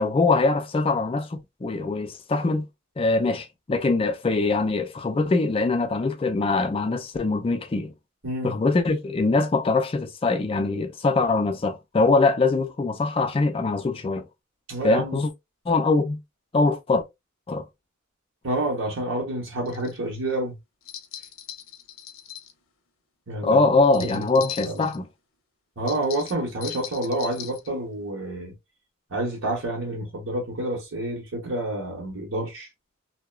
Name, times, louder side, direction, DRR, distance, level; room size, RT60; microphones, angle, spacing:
voice 1, 0.0-2.6 3.0-7.9 8.4-14.3 14.8-15.3 15.7-16.2 16.5-17.0 17.5-17.6 23.4-25.1, left 3 dB, 30° left, 0.4 m, -23 dB
voice 2, 14.7-15.2 18.4-20.5 23.3-23.6 23.9-24.8 25.8-28.5 29.1-32.7, right 1 dB, 70° right, 1.0 m, -29 dB
sound 1, 19.6-20.0 20.8-22.5 23.8-25.0 25.9-27.7, left 10 dB, 85° left, 0.6 m, -39 dB
2.8 x 2.1 x 2.2 m
head